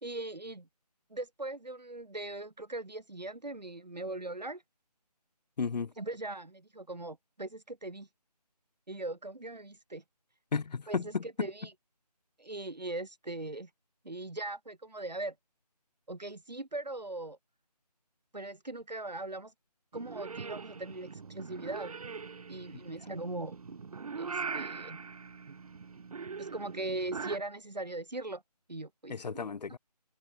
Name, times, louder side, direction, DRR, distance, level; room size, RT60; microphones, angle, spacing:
voice 1, 0.0-0.7 1.1-4.6 6.0-8.1 8.9-10.0 10.9-11.7 12.4-13.7 14.0-15.4 16.1-17.4 18.3-19.5 19.9-22.0 22.5-23.8 24.1-25.0 26.4-28.4 28.7-29.5, right 2 dB, 85° right, 2.3 m, -40 dB
voice 2, 5.6-5.9 10.5-11.5 29.1-29.8, left 5 dB, 85° left, 0.5 m, -33 dB
Purr / Meow, 19.9-27.4, right 5 dB, 60° right, 0.4 m, -41 dB
figure-of-eight pair, 160°, 21 cm